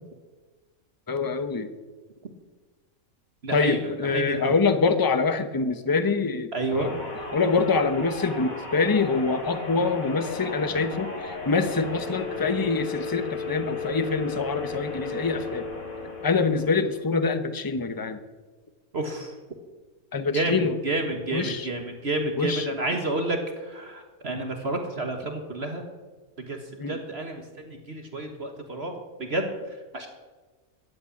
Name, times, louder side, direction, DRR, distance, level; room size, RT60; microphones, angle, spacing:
voice 1, 1.1-1.7 3.5-6.9 7.3-15.7 16.2-18.2 20.1-20.7 21.3-21.7 22.4-22.7 26.8-27.0, left 4 dB, 20° left, 9 dB, 0.8 m, -25 dB
voice 2, 3.4-4.5 6.5-6.9 18.9-19.4 20.3-25.8 26.4-26.6 26.9-28.9 29.2-29.5 29.9-30.1, right 2 dB, 45° right, 4 dB, 1.7 m, -30 dB
sound 1, 6.7-17.1, left 4 dB, 75° left, 3.3 m, -35 dB
14.5 x 9.0 x 9.8 m, 1.3 s
omnidirectional pair, 1.5 m